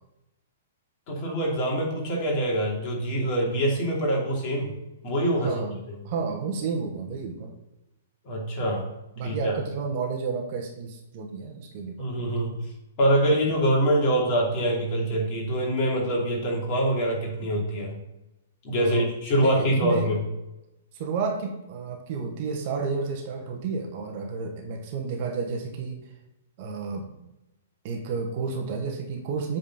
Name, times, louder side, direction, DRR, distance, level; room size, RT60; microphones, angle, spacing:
voice 1, 1.1-4.7 5.0-5.6 8.2-8.9 9.2-9.5 12.0-12.6 13.0-17.9 18.6-20.2, right 1 dB, 35° left, -3 dB, 2.7 m, -24 dB
voice 2, 5.4-5.8 6.0-7.5 9.2-12.1 13.4-13.5 18.8-19.1 19.4-20.1 20.9-26.0 26.6-27.1 27.8-29.6, right 4 dB, 40° right, 2 dB, 1.3 m, -31 dB
8.3 x 4.2 x 5.5 m, 0.93 s
figure-of-eight pair, 110°, 0 cm